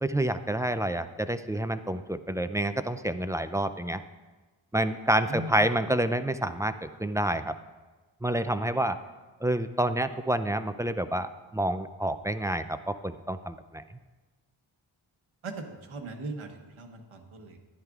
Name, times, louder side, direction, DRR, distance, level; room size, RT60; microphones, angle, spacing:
voice 1, 0.0-4.0 4.7-7.5 8.2-9.0 9.4-13.8, right 1 dB, 5° right, 10 dB, 0.3 m, -28 dB
voice 2, 5.3-5.7 15.4-17.6, right 2 dB, 80° right, 4 dB, 1.2 m, -39 dB
13.5 x 10.5 x 2.4 m, 1.3 s
wide cardioid pair, 70°, 48 cm